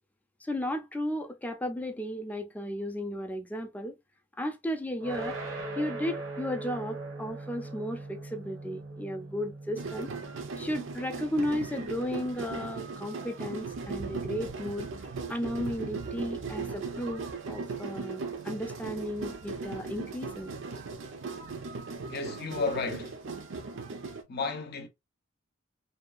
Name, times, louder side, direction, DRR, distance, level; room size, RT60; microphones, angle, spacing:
voice 1, 0.4-4.0 4.4-5.4 5.8-10.1 10.6-14.9 15.3-20.5, equal, 10° left, 0.4 m, -34 dB
sound 1, 5.0-16.0, right 2 dB, 90° right, 0.9 m, -42 dB
sound 2, 9.8-24.2, right 4 dB, 70° right, 0.5 m, -38 dB
voice 2, 22.1-23.2 24.3-24.9, left 4 dB, 55° left, 0.6 m, -33 dB
2.7 x 2.2 x 2.4 m
head